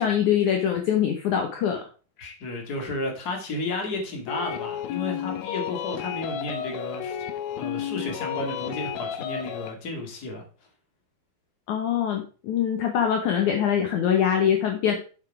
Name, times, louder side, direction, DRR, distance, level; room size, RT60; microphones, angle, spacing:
voice 1, 0.0-1.8 11.7-15.0, left 9 dB, 65° left, 3 dB, 2.2 m, -23 dB
voice 2, 2.2-7.2 7.6-10.4, left 2 dB, 30° left, 1 dB, 2.3 m, -32 dB
sound 1, 4.3-9.7, left 9 dB, 85° left, 2.7 m, -32 dB
7.4 x 7.0 x 4.8 m, 0.37 s
omnidirectional pair, 4.1 m